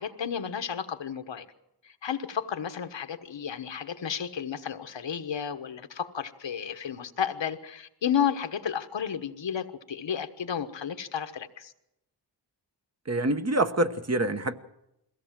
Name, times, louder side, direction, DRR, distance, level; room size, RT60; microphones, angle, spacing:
voice 1, 0.0-1.4 1.8-11.7, left 8 dB, 80° left, 9 dB, 1.3 m, -32 dB
voice 2, 13.1-14.6, right 1 dB, 35° right, 8 dB, 1.1 m, -26 dB
22.0 x 16.5 x 7.4 m, 0.85 s
wide cardioid pair, 90°, 44 cm